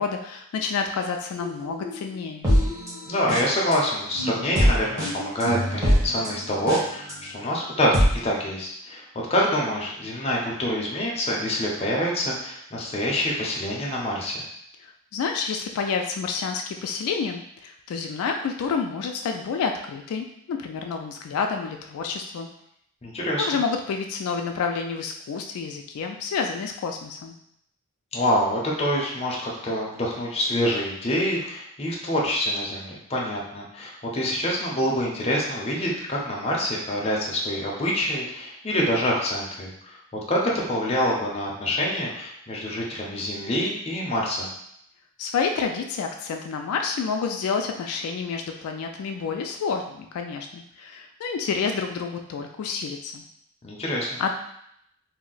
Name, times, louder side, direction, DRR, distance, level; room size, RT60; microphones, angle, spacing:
voice 1, 0.0-2.5 15.1-22.5 23.4-27.4 45.2-53.2 54.2-54.3, left 5 dB, 80° left, 4 dB, 0.3 m, -29 dB
sound 1, 1.4-3.7 4.1-7.1 7.6-8.1, equal, 15° right, 0.9 m, -24 dB
voice 2, 3.1-7.9 8.2-9.0 9.3-14.4 23.0-23.5 28.1-44.5 53.6-54.2, equal, 30° left, -3 dB, 0.6 m, -26 dB
2.6 x 2.1 x 3.8 m, 0.73 s
head